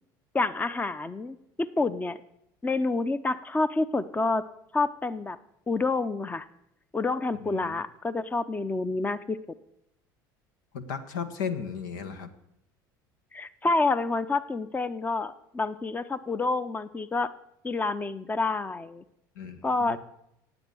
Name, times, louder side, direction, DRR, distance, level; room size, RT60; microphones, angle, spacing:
voice 1, 0.3-2.2 2.6-4.5 4.7-5.4 5.7-6.4 6.9-9.4 13.3-17.3 17.6-19.0 19.6-20.0, left 3 dB, 15° left, 14 dB, 0.7 m, -28 dB
voice 2, 7.4-7.8 10.7-12.3 19.3-20.0, left 6 dB, 80° left, 10 dB, 1.3 m, -35 dB
17.0 x 8.2 x 7.1 m, 0.80 s
hypercardioid pair, 75°, 10 cm